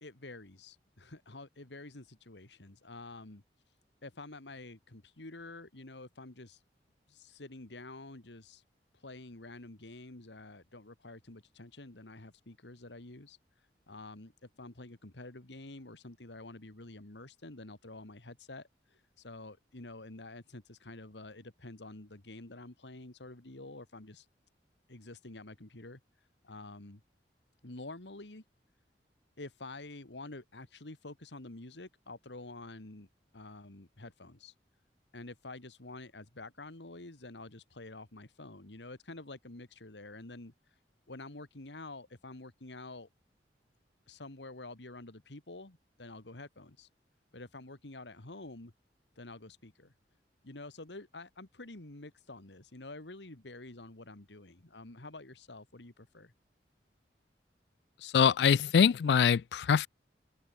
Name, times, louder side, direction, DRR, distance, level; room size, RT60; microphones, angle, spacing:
voice 1, 0.0-3.4 4.0-6.6 7.1-8.6 8.9-24.3 24.9-27.0 27.6-28.4 29.4-33.1 33.3-34.5 35.1-40.8 41.1-43.1 44.1-46.9 47.3-48.7 49.2-49.9 50.4-56.3, left 2 dB, 85° left, 2.1 m, -48 dB
voice 2, 58.0-59.9, left 7 dB, 70° left, 0.3 m, -24 dB
open air
head